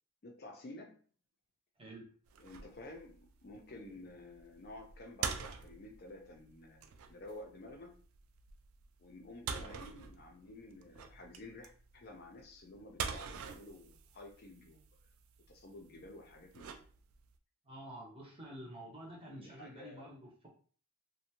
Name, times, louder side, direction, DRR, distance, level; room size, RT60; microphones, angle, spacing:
voice 1, 0.2-1.0 2.4-8.0 9.0-14.8 15.5-16.8 19.2-20.1, left 2 dB, 45° left, 2 dB, 0.4 m, -51 dB
sound 1, 2.3-17.4, right 6 dB, 70° right, 0.3 m, -46 dB
voice 2, 9.4-9.8 17.6-20.5, right 1 dB, 25° right, -2 dB, 0.7 m, -50 dB
2.5 x 2.1 x 2.8 m, 0.43 s
head